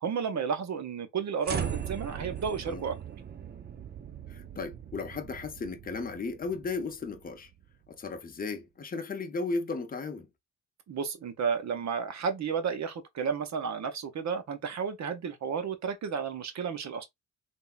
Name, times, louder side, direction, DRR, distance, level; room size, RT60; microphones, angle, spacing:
voice 1, 0.0-2.9 10.9-17.0, right 6 dB, 50° right, 0.7 m, -32 dB
sound 1, 1.4-7.7, right 8 dB, 30° right, 0.4 m, -39 dB
voice 2, 4.3-7.5 7.9-10.3, left 4 dB, 25° left, 0.6 m, -35 dB
3.5 x 2.1 x 2.4 m
cardioid pair, 80°, 36 cm